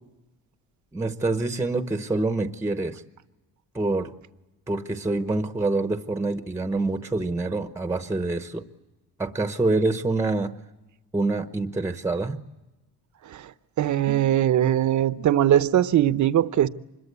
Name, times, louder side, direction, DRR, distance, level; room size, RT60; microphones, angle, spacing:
voice 1, 0.9-3.0 3.7-4.1 4.7-8.6 9.2-10.5 11.1-12.4, right 2 dB, 5° right, 0.9 m, -26 dB
voice 2, 13.8-16.7, right 11 dB, 50° right, 0.8 m, -21 dB
25.5 x 22.0 x 8.1 m
cardioid pair, 145°, 38 cm